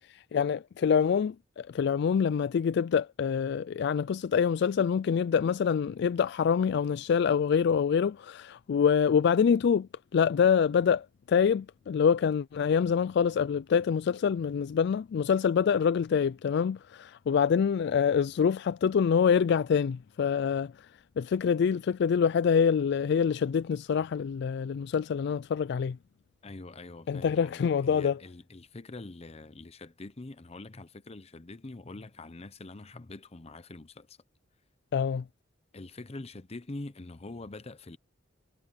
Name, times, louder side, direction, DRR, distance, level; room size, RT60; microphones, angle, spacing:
voice 1, 0.1-20.9 21.2-26.0 27.1-28.2 34.9-35.2, left 7 dB, 60° left, 0.3 m, -26 dB
voice 2, 26.4-34.2 35.7-38.0, left 2 dB, 35° left, 0.8 m, -44 dB
head